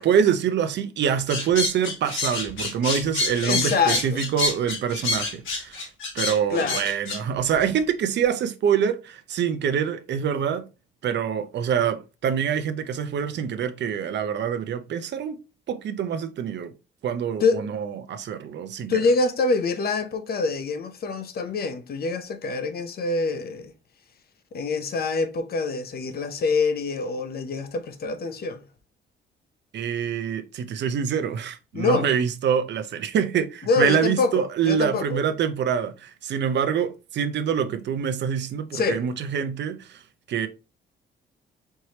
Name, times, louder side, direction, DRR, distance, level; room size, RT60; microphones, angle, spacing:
voice 1, 0.0-5.8 6.1-10.6 11.0-15.4 15.7-16.7 17.0-18.9 29.7-40.0 40.3-40.5, right 8 dB, 60° right, 0.6 m, -25 dB
sound 1, 1.3-7.2, left 3 dB, 75° left, 1.9 m, -27 dB
voice 2, 3.4-4.2 6.5-6.9 17.4-17.7 18.9-23.7 24.5-28.6 31.7-32.1 33.7-35.2 38.7-39.0, left 4 dB, 50° left, 0.7 m, -25 dB
4.6 x 3.1 x 2.8 m
cardioid pair, 90°, 20 cm